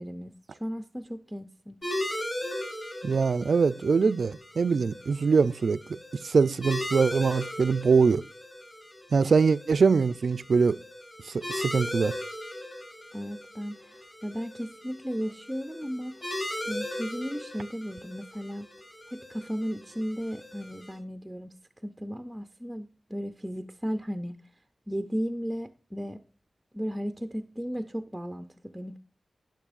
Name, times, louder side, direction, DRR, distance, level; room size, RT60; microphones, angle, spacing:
voice 1, 0.0-1.8 13.1-16.2 16.6-18.7 19.1-21.5 21.8-24.4 24.9-26.2 26.7-29.0, equal, 5° right, 0.5 m, -35 dB
sound 1, 1.8-21.0, left 1 dB, 35° left, 5.3 m, -38 dB
voice 2, 3.0-5.8 6.2-8.2 9.1-10.8 11.3-12.1, right 5 dB, 65° right, 0.4 m, -23 dB
12.0 x 10.5 x 2.5 m
wide cardioid pair, 110°, 0 cm